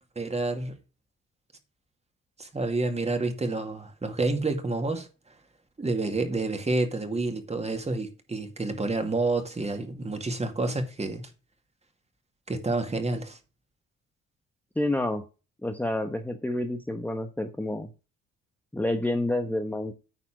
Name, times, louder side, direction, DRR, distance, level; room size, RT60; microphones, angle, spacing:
voice 1, 0.2-0.7 2.4-5.1 5.8-11.3 12.5-13.4, right 2 dB, 20° right, 2.1 m, -29 dB
voice 2, 14.8-15.2 15.6-17.9 18.7-19.9, left 1 dB, 5° left, 1.0 m, -29 dB
9.4 x 4.3 x 7.4 m
cardioid pair, 90°, 30 cm